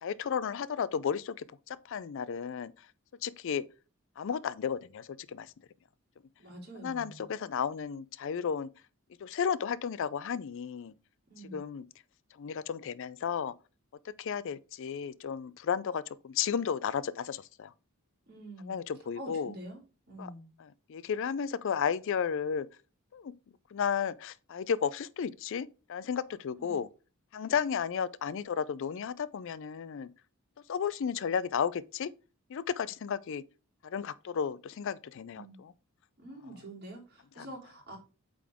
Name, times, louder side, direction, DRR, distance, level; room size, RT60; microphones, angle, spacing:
voice 1, 0.0-1.4 1.7-2.7 3.2-3.6 4.2-5.5 6.8-8.7 9.2-10.9 11.5-11.9 12.4-13.5 14.1-17.7 18.7-19.5 20.2-20.3 20.9-22.7 23.1-23.3 23.7-26.9 27.3-30.1 30.7-32.1 32.5-33.4 33.8-35.7 37.4-37.5, left 7 dB, 60° left, 0.4 m, -33 dB
voice 2, 6.4-7.3 11.3-11.6 18.3-18.8 19.1-19.8 20.1-20.5 26.5-26.8 35.3-35.6 36.2-38.0, right 1 dB, 50° right, 3.0 m, -46 dB
8.4 x 3.8 x 3.5 m
head